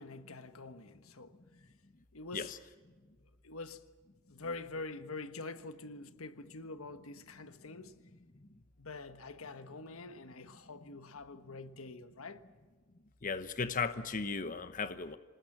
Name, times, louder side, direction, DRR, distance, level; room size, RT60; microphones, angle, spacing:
voice 1, 0.0-1.4 2.1-2.5 3.4-3.9 4.3-8.0 8.8-12.4, left 3 dB, 85° left, 1.4 m, -45 dB
voice 2, 13.2-15.2, left 5 dB, 40° left, 0.9 m, -36 dB
26.5 x 20.0 x 7.4 m
head